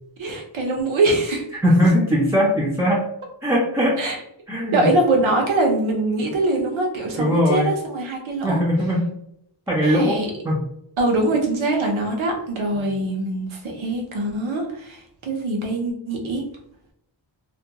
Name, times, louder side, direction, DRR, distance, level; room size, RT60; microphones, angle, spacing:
voice 1, 0.2-1.4 4.0-4.2 4.7-8.6 9.8-10.3 11.0-16.4, right 2 dB, 85° right, 1 dB, 0.8 m, -23 dB
voice 2, 1.6-3.0 3.4-4.0 4.5-4.9 7.2-7.7 8.4-9.1 9.7-10.2 10.4-10.6, equal, 5° right, -4 dB, 0.4 m, -19 dB
2.4 x 2.2 x 2.8 m, 0.75 s
wide cardioid pair, 120°, 46 cm